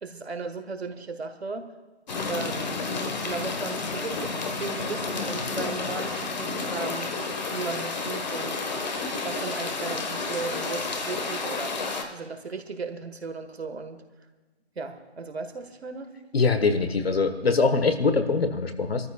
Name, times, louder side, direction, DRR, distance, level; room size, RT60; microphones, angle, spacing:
voice 1, 0.0-1.7 2.3-2.8 3.2-4.3 4.6-7.1 7.5-8.6 9.2-11.8 12.1-14.0 14.7-16.1, right 4 dB, 70° right, 8 dB, 1.4 m, -36 dB
sound 1, 2.1-12.0, left 3 dB, 40° left, 1.3 m, -31 dB
voice 2, 16.3-19.1, left 4 dB, 65° left, 9 dB, 1.3 m, -23 dB
27.5 x 13.5 x 2.3 m, 1.2 s
figure-of-eight pair, 155°, 33 cm